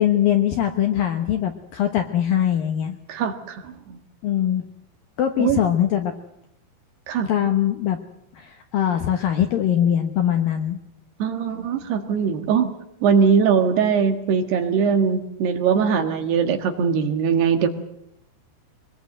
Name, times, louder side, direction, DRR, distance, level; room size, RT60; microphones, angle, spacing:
voice 1, 0.0-3.0 4.2-4.6 5.2-6.1 7.3-8.0 8.4-10.8, left 10 dB, 70° left, 6 dB, 2.3 m, -21 dB
voice 2, 3.1-4.0 5.4-5.6 7.1-7.3 11.2-12.7 13.0-17.7, right 6 dB, 65° right, 7 dB, 3.4 m, -21 dB
24.0 x 21.0 x 7.8 m, 0.76 s
omnidirectional pair, 5.5 m